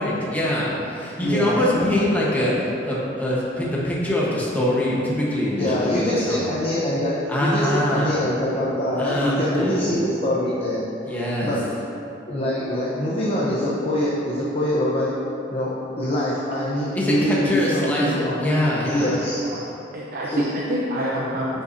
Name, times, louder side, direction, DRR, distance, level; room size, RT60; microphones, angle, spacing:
voice 1, 0.0-6.5 7.3-8.2 9.0-10.0 11.1-11.5 16.9-19.2, left 1 dB, 10° left, -6 dB, 1.1 m, -24 dB
voice 2, 1.2-1.9 5.6-10.8 11.4-11.6 12.3-15.1 15.5-18.4 18.9-19.4 20.3-20.5, left 1 dB, 35° left, -7 dB, 0.9 m, -24 dB
voice 3, 19.2-19.6 19.9-21.6, equal, 50° right, -5 dB, 0.6 m, -27 dB
10.0 x 5.7 x 2.7 m, 2.9 s
head